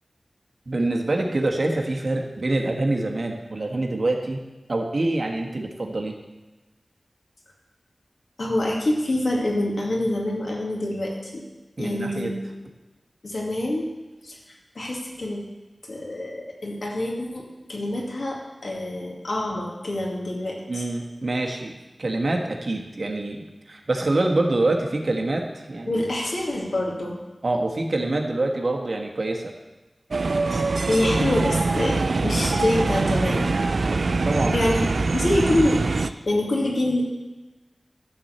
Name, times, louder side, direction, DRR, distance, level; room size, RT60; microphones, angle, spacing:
voice 1, 0.7-4.4 4.7-6.1 11.8-12.3 20.7-26.0 27.4-29.5 30.4-30.7 33.9-34.5, right 2 dB, 60° right, 2 dB, 1.4 m, -26 dB
voice 2, 8.4-11.4 11.8-12.4 13.2-13.9 14.2-15.4 15.9-17.4 17.7-20.9 25.9-27.2 30.5-33.6 34.5-37.0, left 1 dB, 75° left, -2 dB, 2.3 m, -26 dB
sound 1, 30.1-36.1, right 3 dB, 80° right, 0.4 m, -23 dB
12.5 x 4.3 x 7.8 m, 1.1 s
wide cardioid pair, 70°, 0 cm